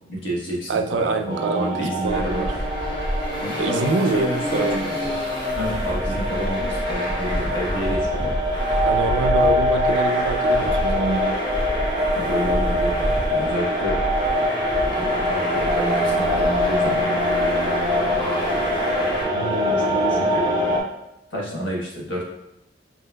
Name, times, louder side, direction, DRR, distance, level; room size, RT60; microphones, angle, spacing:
voice 1, 0.1-2.6 3.4-5.1 5.5-8.4 12.1-14.0 15.0-17.0 19.7-20.4 21.3-22.3, equal, 80° left, -3 dB, 1.1 m, -29 dB
voice 2, 0.7-2.5 3.6-4.9 8.9-11.4 19.3-20.2, right 3 dB, 75° right, 7 dB, 0.4 m, -25 dB
sound 1, 1.3-20.8, equal, 25° right, 0.7 m, -24 dB
Traffic noise roadway noise, 2.0-19.2, equal, 25° left, 0.9 m, -29 dB
5.7 x 2.8 x 2.2 m, 0.87 s
head